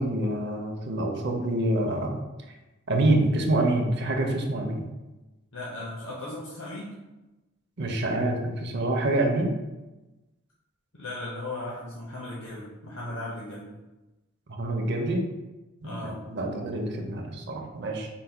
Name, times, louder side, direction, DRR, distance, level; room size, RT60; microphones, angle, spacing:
voice 1, 0.0-2.2 2.9-4.9 7.8-9.5 14.6-15.2 15.8-18.1, right 1 dB, 60° right, 2 dB, 0.6 m, -26 dB
voice 2, 5.5-7.0 10.9-13.8 15.8-16.2, left 2 dB, 65° left, -5 dB, 0.7 m, -37 dB
3.9 x 2.1 x 4.4 m, 1.1 s
head